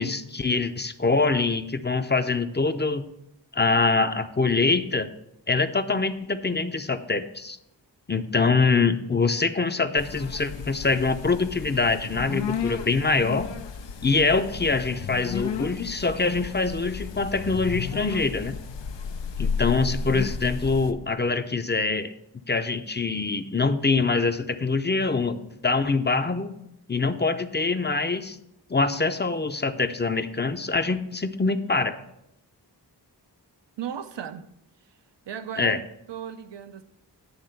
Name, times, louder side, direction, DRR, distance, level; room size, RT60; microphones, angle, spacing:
voice 1, 0.0-3.0 3.5-5.1 5.5-7.6 8.1-13.5 14.0-18.6 19.4-22.1 22.5-26.5 26.9-28.4 28.7-32.0 35.6-35.8, left 4 dB, 25° left, 0.5 m, -24 dB
sound 1, 10.0-20.9, left 6 dB, 90° left, 0.6 m, -33 dB
voice 2, 33.8-34.6 35.3-36.8, right 8 dB, 85° right, 0.6 m, -36 dB
9.6 x 3.6 x 6.7 m
wide cardioid pair, 50°, 42 cm